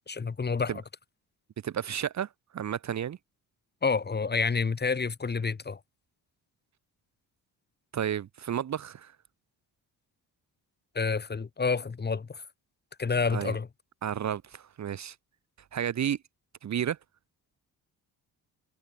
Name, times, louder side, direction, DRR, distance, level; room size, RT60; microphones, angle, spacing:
voice 1, 0.1-0.8 3.8-5.8 10.9-12.4 13.0-13.7, left 4 dB, 25° left, 1.2 m, -29 dB
voice 2, 1.6-3.2 7.9-9.2 13.3-13.6 14.0-15.2 15.7-16.2 16.6-17.0, right 9 dB, 45° right, 0.8 m, -32 dB
cardioid pair, 75°, 39 cm